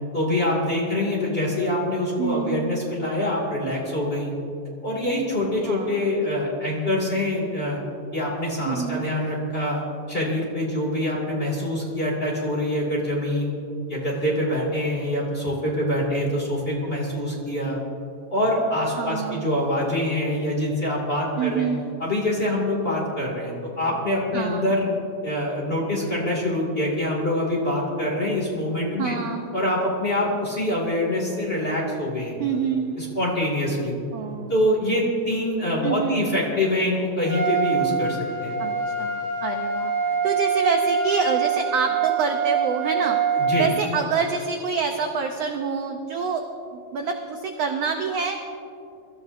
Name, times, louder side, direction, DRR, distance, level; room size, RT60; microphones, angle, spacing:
voice 1, 0.1-4.3 4.8-7.8 8.1-9.8 10.1-13.5 13.9-17.8 18.3-21.7 22.0-24.9 25.2-29.2 29.5-32.4 33.0-33.9 34.5-38.5 43.4-43.7, left 1 dB, 20° left, -3 dB, 2.1 m, -25 dB
voice 2, 2.2-2.8 5.6-6.0 8.6-9.0 19.0-19.5 21.4-21.9 24.3-24.7 29.0-29.5 32.4-33.0 34.1-34.5 35.8-36.3 38.6-46.4 46.7-48.4, right 5 dB, 80° right, 4 dB, 1.4 m, -27 dB
Trumpet, 37.2-43.8, right 6 dB, 55° right, 2.8 m, -24 dB
24.0 x 13.5 x 2.7 m, 2.6 s
omnidirectional pair, 3.7 m